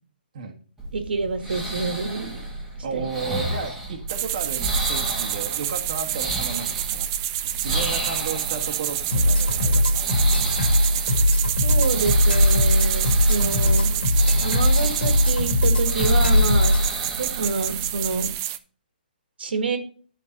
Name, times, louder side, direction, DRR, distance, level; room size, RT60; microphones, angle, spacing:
sound 1, 0.8-18.3, right 1 dB, 5° right, 1.5 m, -31 dB
voice 1, 0.9-2.4 2.9-3.0 11.6-13.9 14.4-16.8 17.2-18.3 19.4-19.8, right 4 dB, 75° right, 6 dB, 1.7 m, -27 dB
voice 2, 2.8-7.1 7.6-10.1, right 5 dB, 45° right, 1 dB, 1.4 m, -33 dB
sound 2, 4.1-18.6, right 13 dB, 20° right, 0.4 m, -28 dB
sound 3, 9.1-16.9, left 1 dB, 75° left, 2.5 m, -20 dB
12.0 x 4.6 x 3.9 m, 0.42 s
hypercardioid pair, 165°, 5 cm